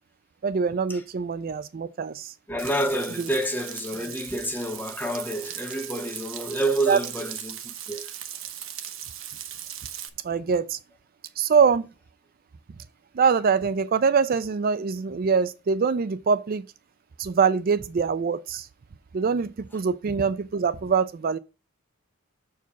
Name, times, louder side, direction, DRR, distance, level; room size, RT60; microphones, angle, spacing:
voice 1, 0.4-2.3 6.9-7.0 10.2-10.8 11.4-11.9 13.1-16.6 17.2-18.7 19.1-21.4, right 5 dB, 45° right, 0.4 m, -24 dB
voice 2, 2.5-8.1, right 1 dB, 10° left, 0.8 m, -29 dB
Frying (food), 2.6-10.1, right 10 dB, 60° right, 0.9 m, -38 dB
7.1 x 4.7 x 5.8 m
head